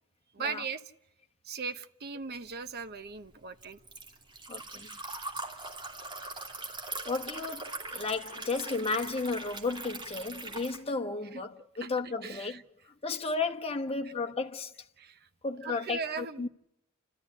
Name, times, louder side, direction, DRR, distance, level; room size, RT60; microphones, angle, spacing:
voice 1, 0.3-0.8 1.4-3.8 11.3-11.4 11.8-11.9 12.2-12.6 15.0-15.3 15.6-16.5, right 5 dB, 50° right, 1.0 m, -38 dB
Liquid, 2.5-10.8, right 2 dB, 20° right, 2.9 m, -41 dB
voice 2, 4.5-4.9 7.1-12.6 13.0-14.7 15.4-16.5, left 3 dB, 25° left, 1.1 m, -33 dB
29.5 x 13.5 x 9.7 m
head